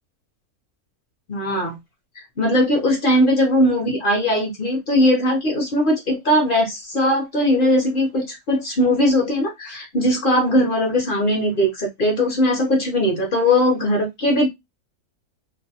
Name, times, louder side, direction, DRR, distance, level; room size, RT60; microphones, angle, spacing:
voice 1, 1.3-1.8 2.4-14.5, left 1 dB, 45° left, 1 dB, 0.7 m, -19 dB
2.6 x 2.1 x 2.7 m, 0.19 s
omnidirectional pair, 1.5 m